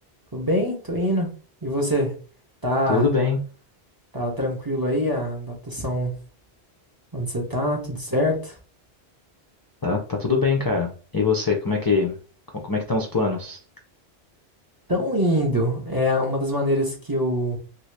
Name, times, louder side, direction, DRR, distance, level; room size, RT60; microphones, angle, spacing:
voice 1, 0.3-1.3 1.6-2.2 2.6-3.1 4.1-6.2 7.1-8.6 14.9-17.6, equal, 25° right, 0 dB, 0.6 m, -24 dB
voice 2, 2.9-3.4 9.8-12.1 12.6-13.6, left 4 dB, 35° left, 1 dB, 0.3 m, -23 dB
2.8 x 2.7 x 3.2 m, 0.39 s
omnidirectional pair, 1.1 m